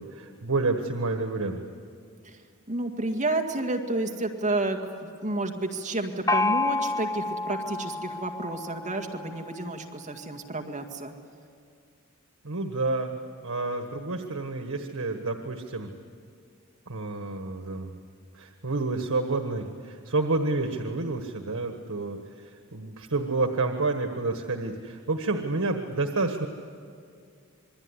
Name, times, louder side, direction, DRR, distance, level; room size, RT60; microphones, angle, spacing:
voice 1, 0.0-1.6 12.4-13.1 13.4-15.9 16.9-18.0 18.3-26.5, right 3 dB, 90° right, 5 dB, 1.5 m, -29 dB
voice 2, 2.7-11.1, right 2 dB, 35° right, 3 dB, 1.9 m, -30 dB
Gong, 6.3-9.8, left 3 dB, 15° left, 0.7 m, -29 dB
27.0 x 22.0 x 9.8 m, 2.3 s
head